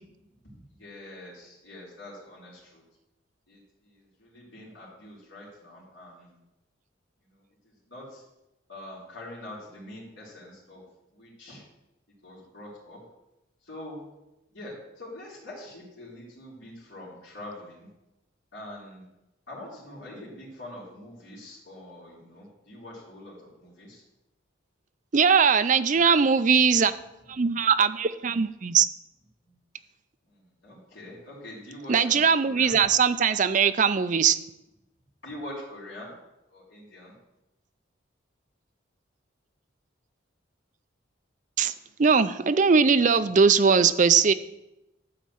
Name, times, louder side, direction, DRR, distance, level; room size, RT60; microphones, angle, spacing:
voice 1, 0.5-2.8 3.5-3.6 4.2-6.3 7.9-8.2 8.7-10.8 11.2-11.6 12.2-13.0 13.7-14.0 14.5-17.9 18.5-19.0 19.5-24.0 30.6-32.7 35.2-36.1 36.5-37.1, left 1 dB, 70° left, -7 dB, 3.6 m, -44 dB
voice 2, 25.1-26.9 27.3-28.9 31.9-34.4 41.6-41.7 42.0-44.3, right 6 dB, 40° right, 12 dB, 0.4 m, -20 dB
12.0 x 4.2 x 7.7 m, 0.92 s
head